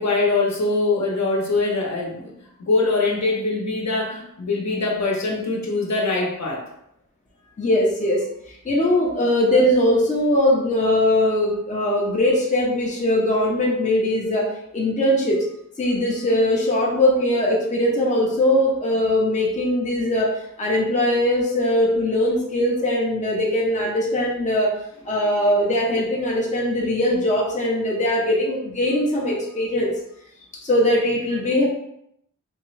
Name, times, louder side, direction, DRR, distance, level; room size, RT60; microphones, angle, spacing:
voice 1, 0.0-2.3 2.6-6.6, left 3 dB, 55° left, -1 dB, 0.9 m, -23 dB
voice 2, 7.6-15.4 15.8-24.7 25.0-29.9 30.6-31.7, left 1 dB, 25° left, -3 dB, 0.7 m, -21 dB
3.6 x 2.9 x 3.2 m, 0.78 s
wide cardioid pair, 125°, 32 cm